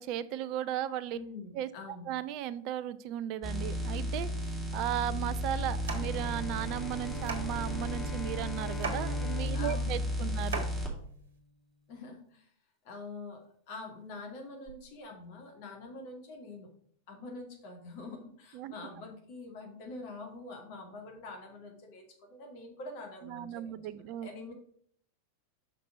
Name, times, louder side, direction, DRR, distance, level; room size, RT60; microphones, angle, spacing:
voice 1, 0.0-1.2 1.5-1.7 2.1-10.7 18.5-18.7 23.2-24.3, right 11 dB, 40° right, 17 dB, 0.5 m, -36 dB
voice 2, 1.1-2.1 9.5-10.4 11.9-12.5 12.8-16.7 17.1-24.5, left 3 dB, 45° left, 2 dB, 2.2 m, -45 dB
sound 1, 3.4-10.9 14.7-14.8, equal, 5° right, 2.4 m, -34 dB
sound 2, 4.9-11.4, right 4 dB, 65° right, 1.4 m, -42 dB
Bowed string instrument, 5.9-11.3, left 3 dB, 20° left, 0.9 m, -42 dB
5.9 x 5.9 x 5.0 m, 0.62 s
figure-of-eight pair, 90°, 0 cm